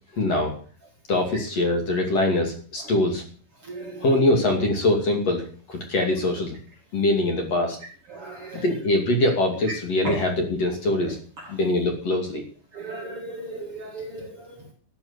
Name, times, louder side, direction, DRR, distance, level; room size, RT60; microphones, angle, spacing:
voice 1, 0.2-0.5 1.1-3.2 4.0-5.4 5.7-6.6 6.9-7.8 8.6-11.2 11.5-12.4, left 1 dB, 45° left, 3 dB, 3.3 m, -23 dB
voice 2, 3.7-4.0 8.1-8.6 10.0-10.2 12.7-14.5, right 2 dB, 45° right, 1 dB, 2.3 m, -35 dB
13.0 x 7.7 x 8.2 m, 0.44 s
omnidirectional pair, 4.5 m